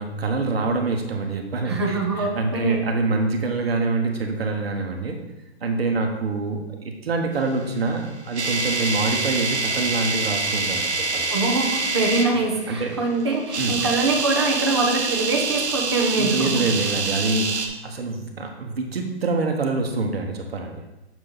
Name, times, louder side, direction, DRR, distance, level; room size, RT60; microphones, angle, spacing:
voice 1, 0.0-5.2 5.6-11.3 12.7-12.9 13.6-13.8 16.2-20.8, right 3 dB, 60° right, 3 dB, 1.2 m, -26 dB
voice 2, 1.6-2.9 11.3-16.9, right 3 dB, 25° right, 0 dB, 0.7 m, -24 dB
sound 1, 7.9-12.3 13.4-17.7, right 3 dB, 75° right, 1.0 m, -26 dB
7.2 x 4.9 x 3.9 m, 1.0 s
hypercardioid pair, 175°, 34 cm